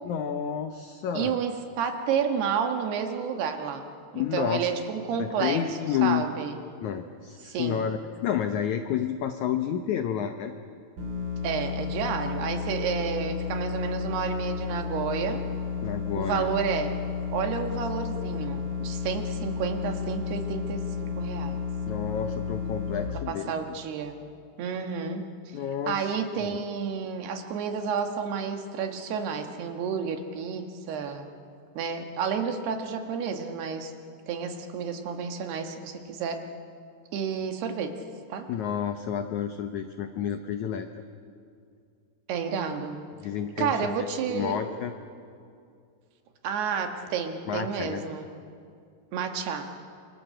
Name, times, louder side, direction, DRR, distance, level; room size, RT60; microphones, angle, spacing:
voice 1, 0.1-1.4 4.2-4.7 5.2-6.2 6.8-10.5 15.8-16.5 21.9-23.5 25.5-26.0 26.4-26.6 38.5-40.9 43.2-44.9 47.5-48.0, left 9 dB, 80° left, 7 dB, 1.7 m, -30 dB
voice 2, 1.1-3.8 4.1-6.5 7.4-7.9 11.4-15.4 16.1-16.9 17.3-21.6 23.3-24.2 24.6-25.6 25.9-31.3 31.8-33.9 34.3-36.4 37.1-37.9 38.3-38.5 42.3-43.0 43.6-44.6 46.4-48.3 49.1-49.7, right 6 dB, 80° right, 5 dB, 3.7 m, -30 dB
sound 1, 11.0-23.1, left 6 dB, 55° right, 5.4 m, -32 dB
28.0 x 25.5 x 7.8 m, 2.4 s
omnidirectional pair, 4.6 m